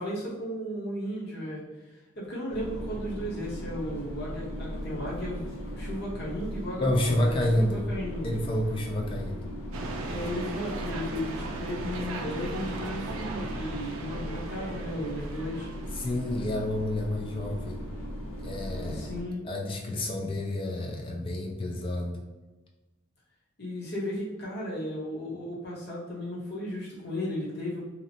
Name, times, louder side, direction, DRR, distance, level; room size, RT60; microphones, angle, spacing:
voice 1, 0.0-1.6 1.9-8.4 10.0-15.7 18.9-19.5 23.6-27.9, equal, 50° left, -6 dB, 0.9 m, -35 dB
sound 1, 2.5-19.2, equal, 80° left, 0.5 m, -38 dB
voice 2, 6.8-7.9 8.2-9.5 15.9-17.8 18.4-19.1 19.4-22.2, left 1 dB, 25° left, 0 dB, 0.3 m, -29 dB
sound 2, 9.7-16.7, right 3 dB, 90° right, 0.4 m, -38 dB
2.8 x 2.0 x 2.7 m, 1.2 s
head